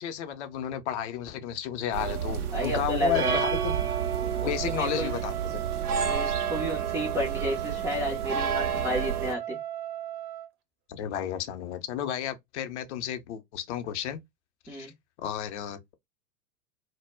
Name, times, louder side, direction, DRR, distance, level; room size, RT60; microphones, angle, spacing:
voice 1, 0.0-3.8 4.4-5.7 10.9-14.2 14.7-14.9 15.2-15.9, left 10 dB, 55° left, 0.6 m, -32 dB
sound 1, 1.9-9.3, right 7 dB, 85° right, 0.6 m, -30 dB
voice 2, 2.5-3.4 4.4-5.1 6.0-9.6 14.7-14.9, equal, 5° right, 0.3 m, -31 dB
Trumpet, 3.2-10.5, right 11 dB, 45° right, 0.7 m, -36 dB
2.0 x 2.0 x 3.3 m
figure-of-eight pair, 85°, 43 cm